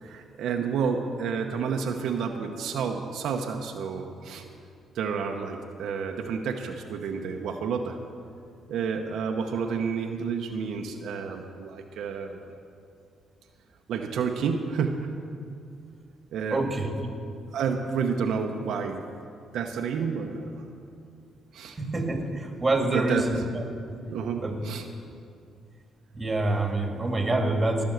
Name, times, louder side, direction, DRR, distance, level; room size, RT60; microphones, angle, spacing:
voice 1, 0.0-4.5 4.9-8.0 8.7-12.4 13.9-15.1 16.3-16.7 17.5-19.0 19.5-20.7 21.5-21.8 22.8-23.3 24.1-24.9, right 6 dB, 75° right, 3 dB, 0.9 m, -30 dB
voice 2, 16.5-16.9 21.8-23.6 24.4-24.6 26.1-27.8, right 2 dB, 20° right, 3 dB, 2.0 m, -26 dB
17.5 x 6.2 x 7.9 m, 2.4 s
cardioid pair, 90°, 0 cm